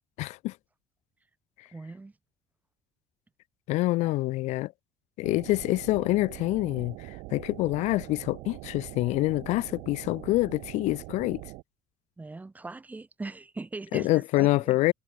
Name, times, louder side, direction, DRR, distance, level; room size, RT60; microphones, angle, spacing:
voice 1, 0.2-0.5 3.7-4.7 5.2-11.4 13.9-14.9, left 19 dB, 70° left, 1.1 m, -26 dB
voice 2, 1.7-2.1 4.0-4.1 12.2-14.8, right 3 dB, 15° right, 6.4 m, -40 dB
sound 1, 5.2-11.6, right 24 dB, 90° right, 6.1 m, -43 dB
cardioid pair, 140°, 12 cm